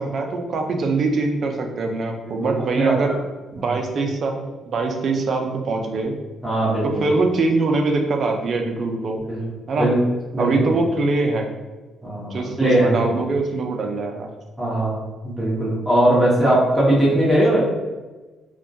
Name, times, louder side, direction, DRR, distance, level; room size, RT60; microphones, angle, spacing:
voice 1, 0.0-3.1 3.5-6.2 6.8-9.2 9.7-9.9 10.4-11.5 12.3-14.3, right 3 dB, 55° right, 3 dB, 0.4 m, -23 dB
voice 2, 2.4-3.1 3.6-3.7 6.4-7.1 9.3-9.4 9.8-10.0 10.3-10.5 12.0-13.0 14.6-15.0 15.2-17.6, right 1 dB, 10° right, -6 dB, 0.8 m, -20 dB
2.2 x 2.2 x 2.6 m, 1.2 s
cardioid pair, 90°, 0 cm